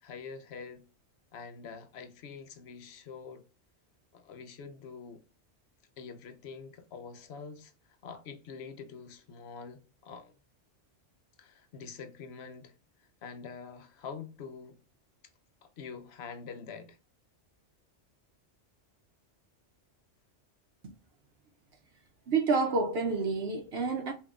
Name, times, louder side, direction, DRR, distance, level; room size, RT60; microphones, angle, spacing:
voice 1, 0.0-0.9 1.3-3.4 4.1-5.2 6.0-7.7 8.0-10.3 11.4-12.7 13.2-14.8 15.6-17.0, left 5 dB, 65° left, 0.9 m, -45 dB
voice 2, 22.3-24.1, right 4 dB, 65° right, 0.8 m, -29 dB
5.1 x 2.7 x 2.4 m
omnidirectional pair, 1.2 m